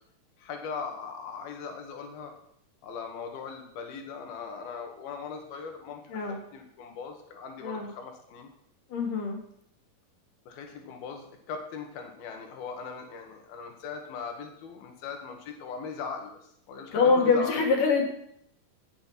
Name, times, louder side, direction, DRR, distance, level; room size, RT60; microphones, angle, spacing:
voice 1, 0.4-2.3 2.8-8.5 10.5-17.6, left 5 dB, 75° left, 4 dB, 3.9 m, -39 dB
voice 2, 8.9-9.4 16.9-18.0, left 4 dB, 60° left, 3 dB, 4.4 m, -24 dB
18.0 x 8.6 x 6.0 m, 0.70 s
omnidirectional pair, 4.3 m